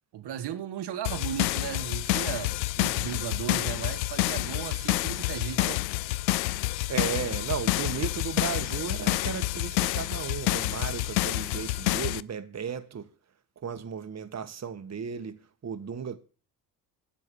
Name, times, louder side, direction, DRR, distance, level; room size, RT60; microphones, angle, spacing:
voice 1, 0.1-5.9, right 10 dB, 55° right, 1.5 m, -36 dB
sound 1, 1.0-12.2, left 18 dB, 85° left, 0.6 m, -28 dB
voice 2, 6.9-13.1 13.6-16.2, right 7 dB, 30° right, 1.5 m, -35 dB
11.0 x 7.5 x 8.7 m
hypercardioid pair, 50°, 49 cm